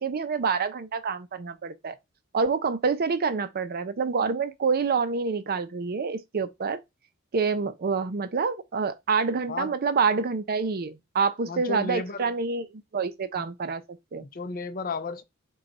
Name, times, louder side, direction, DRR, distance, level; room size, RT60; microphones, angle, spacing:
voice 1, 0.0-2.0 2.3-6.8 7.3-14.3, right 5 dB, 45° right, 0.5 m, -27 dB
voice 2, 11.5-12.3 13.3-13.5 14.2-15.2, left 3 dB, 40° left, 0.5 m, -34 dB
5.2 x 2.3 x 4.1 m
head